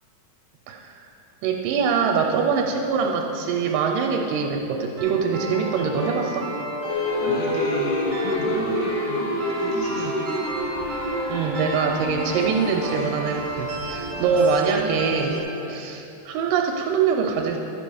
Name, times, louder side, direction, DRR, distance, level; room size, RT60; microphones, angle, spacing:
voice 1, 0.7-1.0 1.4-6.5 10.0-10.1 11.3-15.4 15.7-17.6, right 5 dB, 85° right, 1 dB, 2.3 m, -24 dB
sound 1, 5.0-15.4, right 1 dB, 45° right, 1.6 m, -32 dB
sound 2, 6.9-15.2, left 2 dB, 70° left, 2.7 m, -29 dB
voice 2, 7.2-10.2 14.1-14.4, equal, 50° left, -3 dB, 1.6 m, -32 dB
13.0 x 6.1 x 5.0 m, 2.9 s
omnidirectional pair, 4.0 m